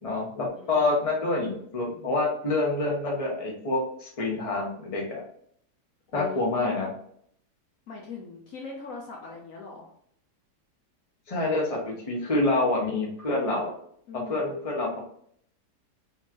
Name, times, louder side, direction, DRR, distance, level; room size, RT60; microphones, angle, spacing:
voice 1, 0.0-5.2 6.1-6.9 11.3-13.7 14.3-15.0, left 2 dB, 25° left, -2 dB, 1.0 m, -27 dB
voice 2, 0.5-0.9 6.1-6.4 7.9-9.9 14.1-14.5, left 4 dB, 60° left, -1 dB, 1.1 m, -41 dB
4.4 x 3.4 x 3.0 m, 0.66 s
omnidirectional pair, 1.8 m